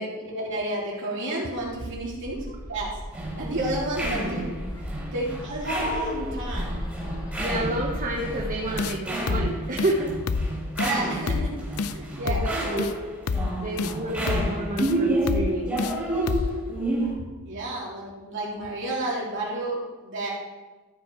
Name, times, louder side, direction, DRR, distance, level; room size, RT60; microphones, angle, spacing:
voice 1, 0.0-2.9 3.4-4.5 5.1-6.7 10.8-11.5 11.9-12.5 17.4-20.3, right 1 dB, 55° right, -4 dB, 3.3 m, -31 dB
Bird, 1.6-8.9, equal, 15° left, 0.9 m, -36 dB
sound 1, 3.1-17.1, right 1 dB, 5° right, 3.0 m, -30 dB
voice 2, 7.3-10.1 12.2-12.9 13.6-16.0 17.0-17.2, right 1 dB, 35° right, -1 dB, 1.0 m, -30 dB
sound 2, 8.8-9.0 9.3-9.5 9.8-9.9 10.3-10.5 10.8-11.0 11.3-11.5 11.8-12.0 12.3-12.5 12.8-12.9 13.3-13.5 13.8-14.0 14.3-14.5 14.8-14.9 15.3-15.5 15.8-16.0 16.3-16.5, left 4 dB, 75° left, 0.5 m, -27 dB
14.0 x 6.1 x 4.7 m, 1.2 s
head